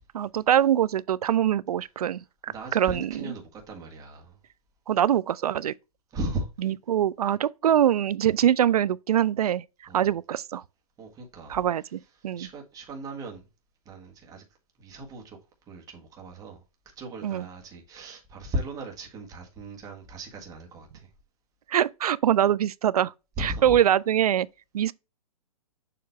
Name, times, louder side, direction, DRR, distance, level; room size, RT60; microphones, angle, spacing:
voice 1, 0.1-3.3 4.9-5.7 6.6-9.6 9.9-10.6 11.5-12.5 17.2-17.4 21.7-23.1 23.4-24.5 24.7-24.9, right 10 dB, 80° right, 0.4 m, -24 dB
voice 2, 2.5-4.4 6.1-6.5 9.9-10.1 11.0-11.9 12.4-13.5 13.8-14.4 14.8-15.4 15.7-16.6 16.9-21.1 23.4-23.7, right 1 dB, 20° right, 1.6 m, -37 dB
6.9 x 3.1 x 4.4 m
hypercardioid pair, 140°, 19 cm